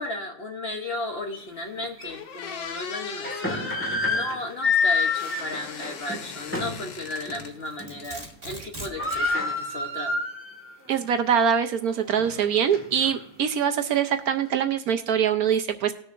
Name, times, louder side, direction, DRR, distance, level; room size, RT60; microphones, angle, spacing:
voice 1, 0.0-10.2, left 2 dB, 45° left, 3 dB, 0.9 m, -35 dB
sound 1, 1.3-1.4 2.0-2.1 3.0-6.9 7.3-7.5 7.8-8.2 8.5-8.6 8.7-10.7 11.1-11.2 11.8-13.2, left 4 dB, 5° left, 1.6 m, -28 dB
sound 2, 1.6-1.7 2.1-3.8 4.7-7.5 7.8-8.5, left 7 dB, 85° left, 1.5 m, -39 dB
Domestic sounds home sounds, 7.4-9.3, right 1 dB, 30° right, 2.1 m, -40 dB
voice 2, 10.9-15.9, right 8 dB, 65° right, 7 dB, 1.0 m, -23 dB
19.5 x 6.6 x 2.5 m, 0.75 s
omnidirectional pair, 1.9 m